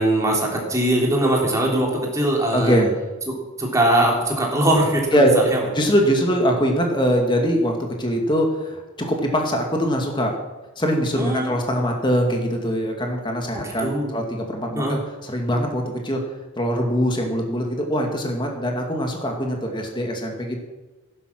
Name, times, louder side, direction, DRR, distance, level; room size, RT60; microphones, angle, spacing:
voice 1, 0.0-2.8 3.6-5.2 5.5-5.6 11.1-11.5 13.8-14.1 14.8-15.0, right 1 dB, 15° right, -1 dB, 3.3 m, -21 dB
voice 2, 2.5-2.9 5.1-5.4 5.7-10.4 10.8-16.2 16.6-20.6, equal, 20° left, 2 dB, 2.2 m, -22 dB
16.0 x 11.5 x 6.1 m, 1.2 s
head